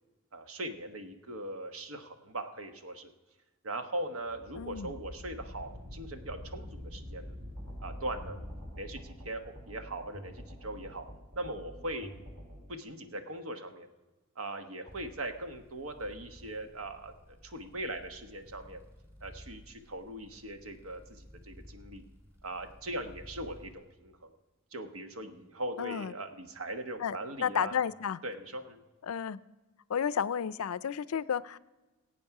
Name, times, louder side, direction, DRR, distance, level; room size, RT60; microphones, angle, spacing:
voice 1, 0.3-3.1 3.6-7.3 7.8-8.4 8.7-11.1 11.3-12.1 12.7-13.9 14.4-17.1 17.4-18.8 19.2-22.0 22.4-24.3 24.7-27.8 28.2-28.8, right 1 dB, 75° right, 6 dB, 1.2 m, -40 dB
sound 1, 4.2-9.1, left 1 dB, 55° right, 2.8 m, -45 dB
voice 2, 4.5-4.9 25.8-26.1 27.0-28.2 29.0-29.4 29.9-31.6, left 7 dB, 80° left, 17 dB, 0.4 m, -32 dB
sound 2, 7.6-12.6, equal, 35° right, 3.1 m, -48 dB
vibrations plastic, 14.9-23.8, equal, 15° right, 2.8 m, -54 dB
17.5 x 8.6 x 4.8 m, 1.2 s
head